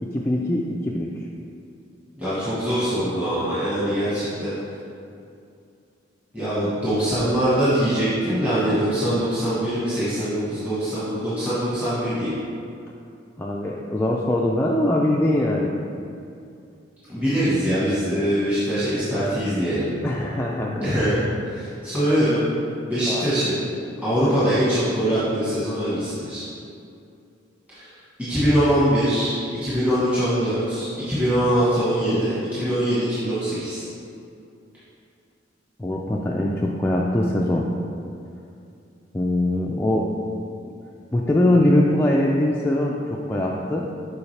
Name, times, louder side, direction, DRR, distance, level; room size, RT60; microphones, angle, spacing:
voice 1, 0.0-1.1 13.4-15.8 20.0-20.8 23.1-23.3 35.8-37.7 39.1-40.1 40.7-40.8 41.1-43.9, left 1 dB, 10° left, -3 dB, 0.3 m, -22 dB
voice 2, 2.2-4.5 6.3-12.3 17.1-19.9 20.8-21.2 21.4-22.4 22.8-23.6 24.0-26.4 27.7-29.3 29.6-33.9, equal, 10° right, -13 dB, 1.3 m, -23 dB
7.0 x 4.8 x 3.3 m, 2.5 s
head